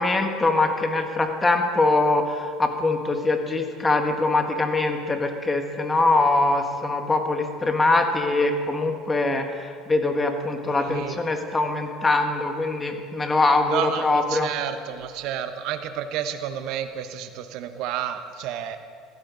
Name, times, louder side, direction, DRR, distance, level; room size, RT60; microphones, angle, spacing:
voice 1, 0.0-14.5, left 2 dB, 15° left, 4 dB, 1.5 m, -23 dB
voice 2, 10.8-11.2 13.7-18.8, right 9 dB, 65° right, 8 dB, 1.1 m, -30 dB
16.0 x 14.5 x 4.0 m, 2.3 s
supercardioid pair, 125°, 0 cm